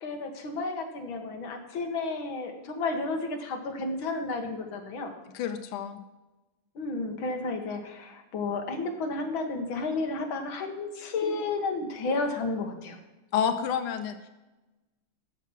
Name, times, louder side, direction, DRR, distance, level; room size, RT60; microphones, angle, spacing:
voice 1, 0.0-5.1 6.8-13.0, left 3 dB, 65° left, 5 dB, 2.0 m, -32 dB
voice 2, 5.3-6.0 13.3-14.3, left 8 dB, 80° left, 6 dB, 1.6 m, -29 dB
14.0 x 6.0 x 5.8 m, 1.1 s
omnidirectional pair, 2.4 m